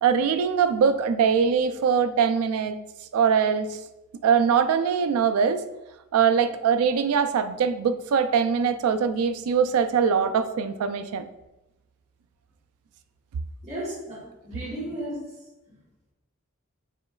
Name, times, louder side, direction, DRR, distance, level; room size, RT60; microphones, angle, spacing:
voice 1, 0.0-2.8 3.1-3.8 4.2-5.6 6.1-11.2, right 6 dB, 90° right, 11 dB, 0.3 m, -22 dB
voice 2, 13.6-15.2, right 1 dB, 30° right, -8 dB, 1.2 m, -34 dB
5.0 x 3.1 x 2.3 m, 0.98 s
head